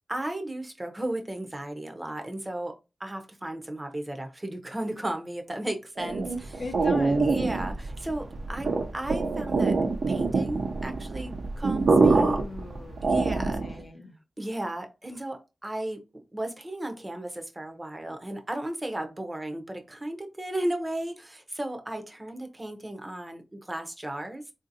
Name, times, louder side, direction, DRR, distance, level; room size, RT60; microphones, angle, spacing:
voice 1, 0.1-6.6 7.2-9.8 10.1-12.4 13.0-13.6 14.4-16.0 16.3-24.4, right 1 dB, 20° right, 0.6 m, -34 dB
sound 1, 6.0-13.8, right 3 dB, 90° right, 0.6 m, -25 dB
voice 2, 6.6-7.2 12.0-14.1, left 3 dB, 75° left, 0.6 m, -40 dB
3.7 x 2.6 x 2.6 m
wide cardioid pair, 115°, 0 cm